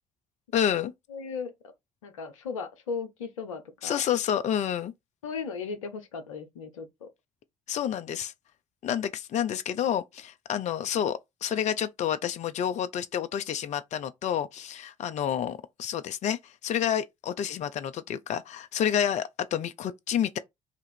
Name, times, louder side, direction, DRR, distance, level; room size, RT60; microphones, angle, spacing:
voice 1, 0.5-0.9 3.8-4.9 7.7-8.3 8.8-20.4, left 9 dB, 45° left, 0.5 m, -29 dB
voice 2, 1.1-1.7 2.0-4.0 5.2-7.1, left 5 dB, 85° left, 0.6 m, -37 dB
2.9 x 2.4 x 4.2 m
hypercardioid pair, 50°, 16 cm